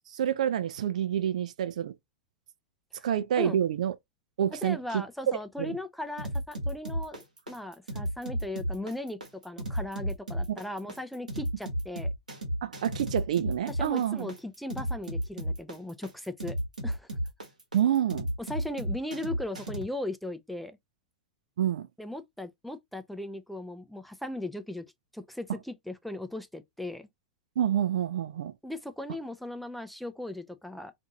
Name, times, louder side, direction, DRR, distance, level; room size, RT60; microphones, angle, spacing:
voice 1, 0.1-1.9 3.0-3.9 4.4-5.0 5.6-5.8 12.6-14.3 17.7-18.3 21.6-21.9 27.6-28.5, right 10 dB, 65° right, 0.4 m, -28 dB
voice 2, 4.6-12.1 13.7-16.6 16.8-17.1 18.5-20.8 22.0-24.8 25.1-27.1 28.6-30.9, left 1 dB, ahead, 0.4 m, -38 dB
sound 1, 6.2-19.8, equal, 90° right, 1.0 m, -33 dB
2.6 x 2.6 x 3.9 m
figure-of-eight pair, 95°, 4 cm